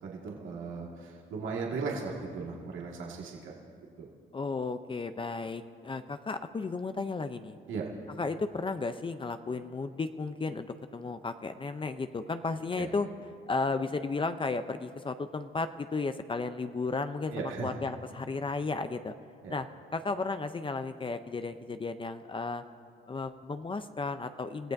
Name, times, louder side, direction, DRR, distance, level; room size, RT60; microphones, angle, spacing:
voice 1, 0.0-3.5 4.0-4.1 7.7-7.9 12.8-12.9 17.3-17.7 19.4-19.5, right 4 dB, 80° right, -3 dB, 1.9 m, -37 dB
voice 2, 4.3-7.6 8.2-13.1 13.5-19.1 19.5-19.7 19.9-22.6 23.1-24.7, left 3 dB, 25° left, 9 dB, 0.6 m, -34 dB
29.0 x 15.0 x 2.6 m, 2.3 s
cardioid pair, 90°, 20 cm